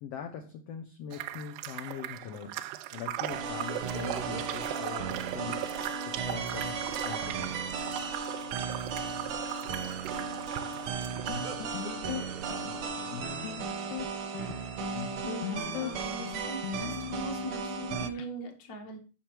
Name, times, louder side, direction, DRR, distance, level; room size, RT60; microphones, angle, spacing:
voice 1, 0.0-2.6 2.9-5.6 6.0-7.6, left 8 dB, 70° left, 5 dB, 1.6 m, -42 dB
sound 1, 1.1-11.5, right 13 dB, 90° right, 2.1 m, -39 dB
sound 2, 3.3-18.1, right 5 dB, 70° right, 1.3 m, -36 dB
sound 3, 11.3-18.3, left 9 dB, 85° left, 2.3 m, -39 dB
voice 2, 15.2-19.0, right 2 dB, 35° left, 3 dB, 1.5 m, -41 dB
8.6 x 6.0 x 4.5 m, 0.35 s
omnidirectional pair, 3.6 m